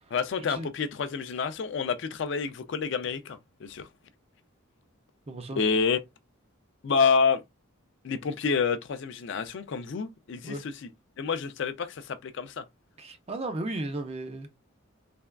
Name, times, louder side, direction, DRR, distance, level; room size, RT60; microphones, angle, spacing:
voice 1, 0.1-3.9 5.6-6.0 6.8-7.4 8.0-10.6 11.2-12.6, left 5 dB, 55° left, 0.4 m, -28 dB
voice 2, 5.3-5.6 10.4-10.6 13.0-14.6, right 2 dB, 30° right, 0.4 m, -35 dB
3.3 x 2.2 x 2.2 m
head